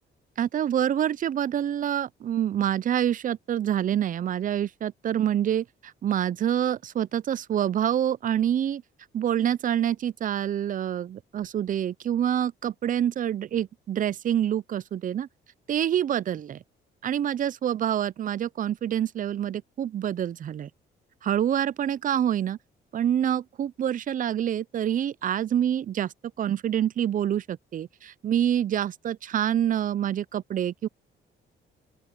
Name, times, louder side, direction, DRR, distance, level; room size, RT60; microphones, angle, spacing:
voice 1, 0.4-8.8 9.1-15.3 15.7-16.6 17.0-20.7 21.2-22.6 22.9-30.9, right 10 dB, 45° right, 0.4 m, -26 dB
open air
cardioid pair, 90°, 20 cm